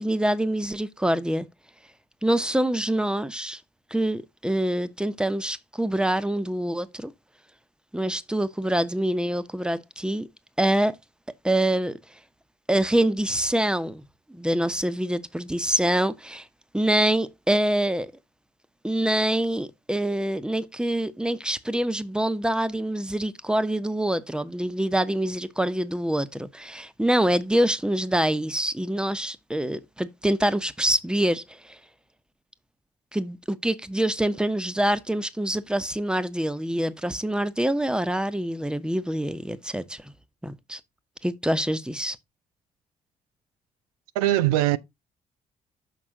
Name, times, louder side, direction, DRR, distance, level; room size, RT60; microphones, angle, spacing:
voice 1, 0.0-1.5 2.2-3.6 3.9-7.1 7.9-10.3 10.6-11.0 11.4-12.0 12.7-14.0 14.3-16.5 16.7-18.1 18.8-31.8 33.1-40.1 40.4-40.8 41.2-42.2, right 1 dB, 5° right, 1.0 m, -25 dB
voice 2, 44.2-44.8, right 15 dB, 90° right, 0.5 m, -21 dB
6.5 x 5.4 x 3.8 m
hypercardioid pair, 45°, 18 cm